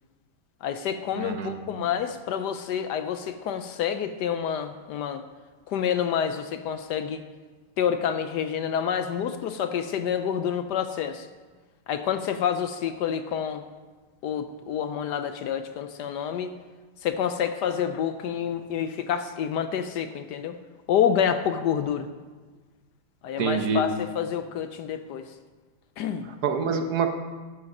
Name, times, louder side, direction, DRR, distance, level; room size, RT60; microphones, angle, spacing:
voice 1, 0.6-5.2 5.7-7.3 7.8-11.3 11.9-13.6 14.2-16.5 17.0-20.6 20.9-22.1 23.2-25.2 26.0-26.3, left 8 dB, 70° left, 9 dB, 1.1 m, -28 dB
voice 2, 1.2-1.5 23.4-23.8 26.4-27.1, right 5 dB, 60° right, 6 dB, 1.3 m, -25 dB
12.0 x 7.7 x 5.4 m, 1.4 s
omnidirectional pair, 2.0 m